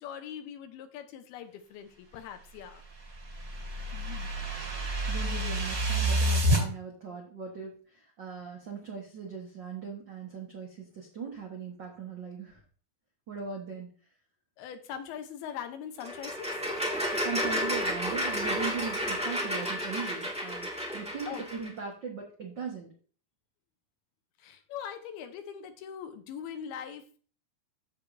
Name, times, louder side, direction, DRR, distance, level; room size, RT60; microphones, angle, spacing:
voice 1, 0.0-2.8 14.6-16.5 21.3-21.4 24.4-27.2, left 8 dB, 80° left, 7 dB, 2.9 m, -41 dB
sound 1, 2.6-6.6, right 1 dB, 30° right, 2.0 m, -29 dB
voice 2, 3.9-4.3 5.1-12.6 13.3-13.9 17.2-20.7 20.9-22.9, right 5 dB, 80° right, -1 dB, 1.0 m, -39 dB
sound 2, 16.0-21.7, equal, 5° right, 0.7 m, -32 dB
14.5 x 5.0 x 2.7 m, 0.41 s
omnidirectional pair, 4.4 m